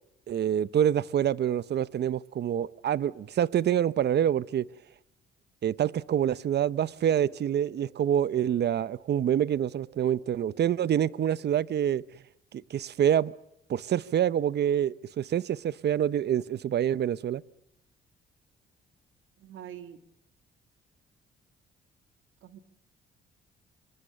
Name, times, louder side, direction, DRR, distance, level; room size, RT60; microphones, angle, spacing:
voice 1, 0.3-4.7 5.6-12.0 12.5-13.3 13.7-17.4, right 10 dB, 55° right, 0.9 m, -26 dB
sound 1, 7.0-12.0, right 3 dB, 35° right, 5.4 m, -58 dB
voice 2, 19.4-20.0 22.4-22.6, right 10 dB, 80° right, 2.0 m, -44 dB
26.0 x 25.0 x 6.8 m
cardioid pair, 90°, 20 cm